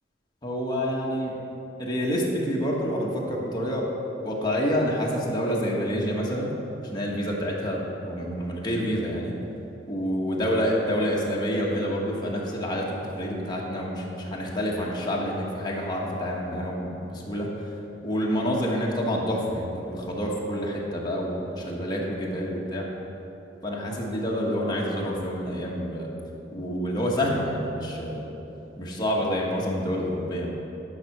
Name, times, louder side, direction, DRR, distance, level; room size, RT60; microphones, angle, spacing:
voice 1, 0.4-1.3 1.8-3.9 4.2-6.5 6.8-9.3 9.9-17.7 18.0-22.9 23.6-26.1 26.5-28.2 28.8-30.5, equal, 25° left, -3 dB, 1.5 m, -28 dB
10.5 x 5.9 x 6.0 m, 2.9 s
head